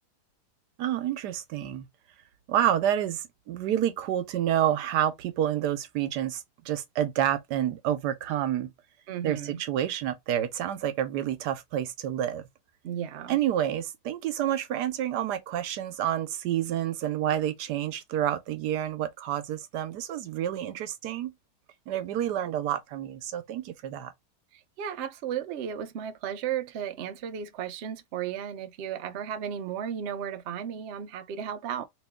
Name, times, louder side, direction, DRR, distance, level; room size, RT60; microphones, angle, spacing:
voice 1, 0.8-1.9 2.5-8.7 9.2-12.4 13.3-21.3 21.9-24.1, right 11 dB, 85° right, 1.2 m, -29 dB
voice 2, 9.1-9.6 12.8-13.4 24.5-31.8, right 9 dB, 65° right, 0.6 m, -34 dB
3.0 x 3.0 x 3.4 m
omnidirectional pair, 1.8 m